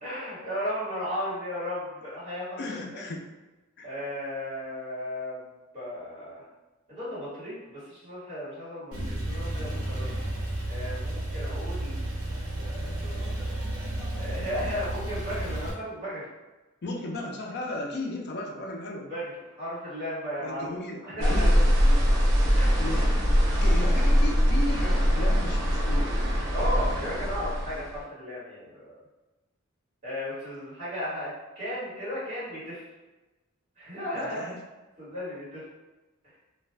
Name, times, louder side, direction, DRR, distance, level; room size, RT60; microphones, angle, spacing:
voice 1, 0.0-3.0 3.8-6.4 6.9-10.1 10.7-12.3 12.6-13.4 14.1-16.3 19.1-20.7 21.0-21.5 22.5-22.7 26.5-29.0 30.0-32.8 33.8-34.5 35.0-35.6, equal, 35° right, -10 dB, 1.4 m, -35 dB
voice 2, 2.6-3.3 3.8-3.9 16.8-19.1 20.4-22.0 22.8-23.3 23.6-26.1 34.2-34.6, left 2 dB, 50° left, 1 dB, 0.5 m, -35 dB
Male speech man speaking / Car / Idling, 8.9-15.7, right 1 dB, 90° right, 0.8 m, -32 dB
sound 1, 21.2-28.0, equal, 60° right, 0.6 m, -22 dB
2.4 x 2.2 x 3.2 m, 1.1 s
head